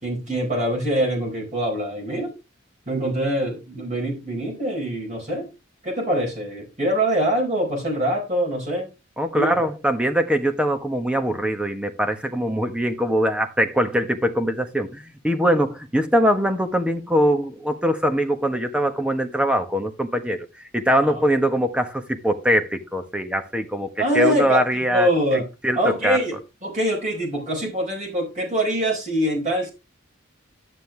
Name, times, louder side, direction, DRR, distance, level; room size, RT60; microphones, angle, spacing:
voice 1, 0.0-2.3 2.9-5.5 5.8-8.9 9.3-9.7 21.0-21.1 24.0-24.6 24.9-25.5 25.8-29.7, right 1 dB, 35° right, 4.3 m, -24 dB
voice 2, 9.2-25.1 25.6-26.2, equal, 5° right, 1.3 m, -22 dB
11.5 x 9.3 x 3.4 m
head